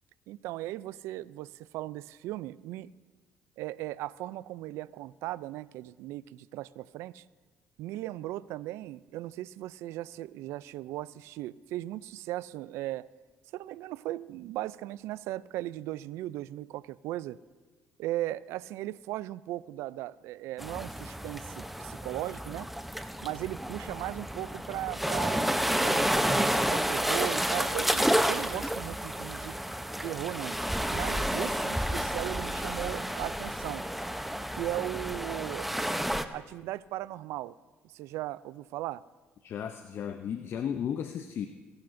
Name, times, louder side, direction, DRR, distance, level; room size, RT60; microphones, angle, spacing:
voice 1, 0.3-2.9 3.6-7.2 7.8-13.1 13.5-17.4 18.0-22.7 23.2-29.6 30.0-30.6 30.9-33.8 34.6-35.7 36.3-37.6 37.8-39.0, right 15 dB, 80° right, 19 dB, 0.3 m, -37 dB
sound 1, 20.6-36.2, equal, 5° right, 0.7 m, -30 dB
voice 2, 39.4-41.5, left 8 dB, 60° left, 8 dB, 0.6 m, -34 dB
27.0 x 11.5 x 2.6 m, 1.3 s
supercardioid pair, 70°, 5 cm